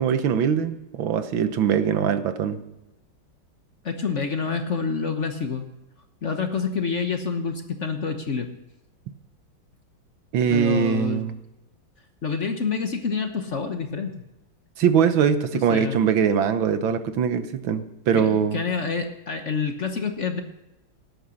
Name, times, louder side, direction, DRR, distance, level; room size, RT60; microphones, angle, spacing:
voice 1, 0.0-2.6 10.3-11.4 14.8-18.6, right 7 dB, 70° right, 11 dB, 1.7 m, -22 dB
voice 2, 3.8-5.7 6.2-8.5 10.5-11.2 12.2-14.1 15.5-16.0 18.1-20.4, left 5 dB, 45° left, 6 dB, 1.1 m, -27 dB
18.0 x 10.0 x 6.4 m, 0.96 s
omnidirectional pair, 2.3 m